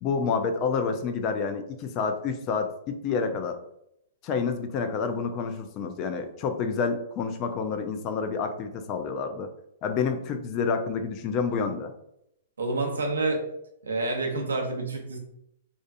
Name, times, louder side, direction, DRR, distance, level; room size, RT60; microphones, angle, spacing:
voice 1, 0.0-3.6 4.2-9.5 9.8-11.9, left 5 dB, 35° left, 7 dB, 0.3 m, -28 dB
voice 2, 12.6-13.4 13.8-15.2, right 2 dB, 90° right, 2 dB, 0.7 m, -28 dB
2.4 x 2.4 x 2.5 m, 0.78 s
hypercardioid pair, 130°, 0 cm